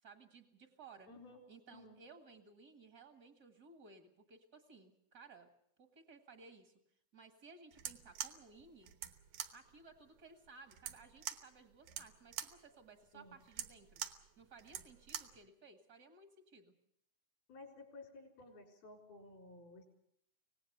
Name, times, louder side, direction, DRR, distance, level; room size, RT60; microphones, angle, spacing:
voice 1, 0.0-1.1 1.5-5.5 5.8-6.7 7.1-8.9 9.5-14.0 14.4-16.7, right 4 dB, 40° right, 5 dB, 1.3 m, -59 dB
voice 2, 1.1-1.4 1.7-2.0 13.1-13.4 17.5-19.8, left 2 dB, 80° left, 2 dB, 6.2 m, -55 dB
sound 1, 7.7-15.4, right 10 dB, 70° right, 2.5 m, -46 dB
26.0 x 18.5 x 6.7 m, 0.73 s
omnidirectional pair, 4.3 m